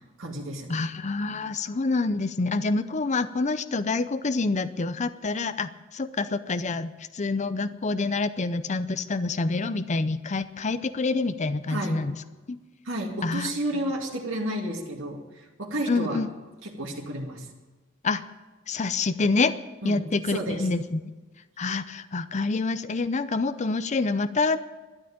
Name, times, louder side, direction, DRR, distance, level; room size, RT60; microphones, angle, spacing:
voice 1, 0.2-0.8 11.7-12.0 12.8-16.2 16.6-17.5 19.8-20.0 20.3-20.7, right 1 dB, 80° right, -2 dB, 2.4 m, -31 dB
voice 2, 0.7-12.1 12.5-12.6 13.2-13.5 15.9-16.3 18.0-18.2 18.7-19.5 19.8-21.0 21.6-24.6, left 3 dB, 35° left, 12 dB, 0.6 m, -27 dB
12.5 x 10.5 x 8.7 m, 1.2 s
head